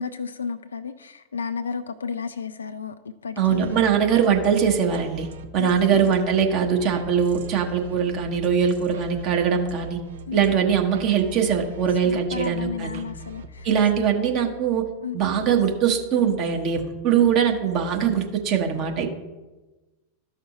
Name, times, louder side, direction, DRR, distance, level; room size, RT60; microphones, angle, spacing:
voice 1, 0.0-2.9 3.2-3.8 5.6-6.1 10.3-10.4 12.0-13.7 15.0-15.2, left 6 dB, 70° left, 0.3 m, -32 dB
voice 2, 3.4-5.3 5.5-10.0 10.3-13.0 13.6-14.8 15.1-19.1, right 7 dB, 40° right, 1.2 m, -22 dB
sound 1, 3.6-14.1, right 3 dB, 60° right, 0.6 m, -41 dB
13.0 x 5.7 x 3.1 m
figure-of-eight pair, 90°, 0 cm